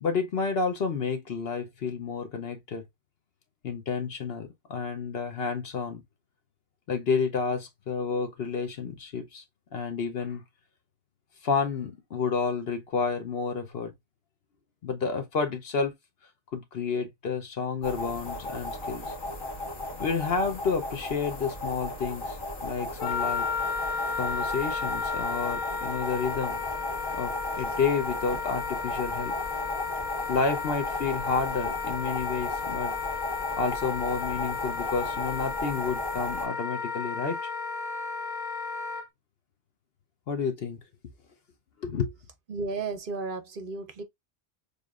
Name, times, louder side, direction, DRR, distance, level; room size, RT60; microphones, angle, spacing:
voice 1, 0.0-2.8 3.6-6.0 6.9-9.4 9.7-10.4 11.4-13.9 14.8-15.9 16.5-19.1 20.0-22.4 22.6-23.5 24.2-26.6 27.1-29.3 30.3-32.9 33.6-37.4 40.3-40.8 41.8-42.1, left 5 dB, 55° left, 0.9 m, -30 dB
sound 1, 17.8-36.5, left 1 dB, 40° left, 1.5 m, -36 dB
Wind instrument woodwind instrument, 23.0-39.1, left 5 dB, 80° left, 1.2 m, -33 dB
voice 2, 42.5-44.0, right 4 dB, 50° right, 0.7 m, -33 dB
6.6 x 2.6 x 2.4 m
omnidirectional pair, 1.3 m